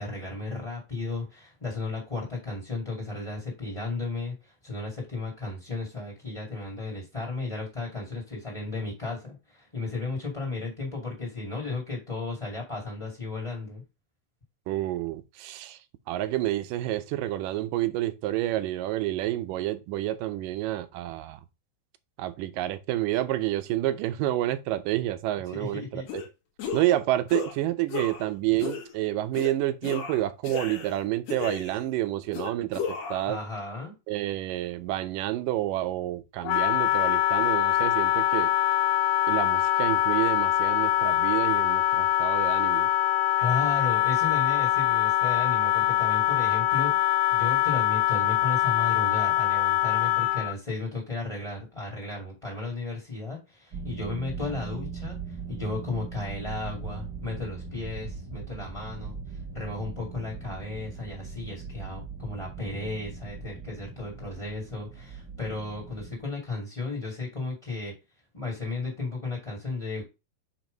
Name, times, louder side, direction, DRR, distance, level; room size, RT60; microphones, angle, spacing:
voice 1, 0.0-13.8 25.5-26.1 33.2-33.9 43.4-59.1 59.5-67.9 68.3-70.0, left 3 dB, 15° left, 1.6 m, -34 dB
voice 2, 14.7-15.8 16.1-21.4 22.2-26.2 26.7-33.4 34.1-38.5 39.3-42.9, right 15 dB, 80° right, 2.3 m, -29 dB
sound 1, 26.1-26.3 26.6-27.0 27.3-27.5 27.9-28.3 28.6-28.9 29.3-29.5 29.8-31.0 31.3-31.9 32.3-33.3, left 6 dB, 60° left, 2.3 m, -34 dB
Wind instrument woodwind instrument, 36.4-50.6, left 13 dB, 80° left, 1.9 m, -24 dB
sound 2, 53.7-66.2, right 5 dB, 45° right, 1.3 m, -40 dB
6.0 x 4.6 x 5.2 m
omnidirectional pair, 3.9 m